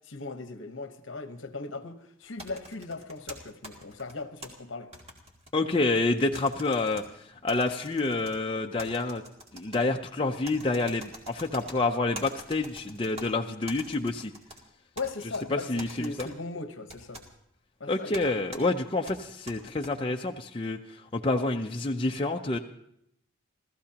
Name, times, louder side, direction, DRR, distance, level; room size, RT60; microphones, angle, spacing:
voice 1, 0.1-4.9 15.0-17.2 17.8-18.6, left 3 dB, 65° left, 1.1 m, -38 dB
sound 1, 2.4-4.5 4.9-6.0 6.3-7.0 7.5-8.3 8.8-9.8 10.4-11.8 12.1-13.3 13.7-14.6 15.0-15.4 15.8-16.3 16.9-17.3 18.1-18.2 18.5-18.6 19.1-19.9, right 1 dB, 30° right, 1.9 m, -45 dB
voice 2, 5.5-7.0 7.4-9.2 9.5-14.3 15.5-16.3 17.9-20.8 21.1-22.6, left 2 dB, 25° left, 0.5 m, -28 dB
29.5 x 14.5 x 2.9 m
head